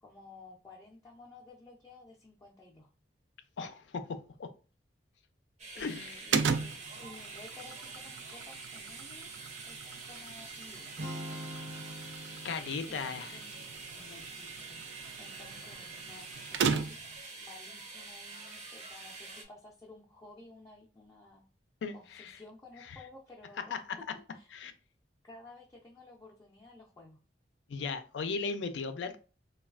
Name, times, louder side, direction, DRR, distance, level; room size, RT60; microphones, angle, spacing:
voice 1, 0.0-2.9 5.7-9.3 9.6-10.9 12.9-13.7 13.9-17.0 17.4-21.4 21.9-24.5 25.2-27.2, left 2 dB, 20° left, 0.4 m, -54 dB
voice 2, 3.6-4.5 5.8-6.1 12.4-13.4 21.8-22.4 23.7-23.8 24.5-24.7 27.7-29.2, left 4 dB, 85° left, 0.4 m, -37 dB
sound 1, 5.6-19.4, right 3 dB, 40° right, 0.6 m, -46 dB
sound 2, 6.3-17.2, right 6 dB, 85° right, 0.3 m, -37 dB
sound 3, 11.0-15.1, equal, 65° right, 0.8 m, -45 dB
3.1 x 2.3 x 2.3 m
head